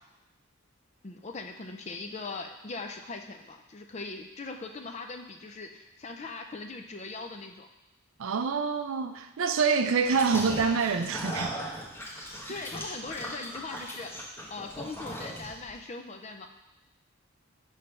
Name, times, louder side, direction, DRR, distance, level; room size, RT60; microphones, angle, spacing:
voice 1, 1.0-7.7 12.5-14.1 14.5-16.5, left 3 dB, 30° left, 5 dB, 0.4 m, -40 dB
voice 2, 8.2-11.5, right 5 dB, 70° right, 9 dB, 0.4 m, -26 dB
sound 1, 10.0-15.8, equal, 10° left, 1.1 m, -38 dB
6.3 x 3.3 x 5.6 m, 0.97 s
head